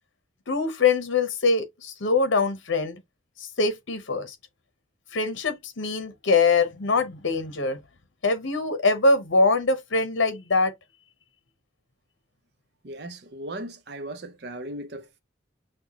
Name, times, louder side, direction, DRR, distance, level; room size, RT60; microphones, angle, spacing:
voice 1, 0.5-3.0 3.6-4.3 5.1-7.8 8.2-10.7, left 3 dB, 80° left, 0.9 m, -23 dB
voice 2, 12.8-15.2, right 1 dB, 55° right, 0.7 m, -37 dB
6.2 x 2.3 x 2.9 m
head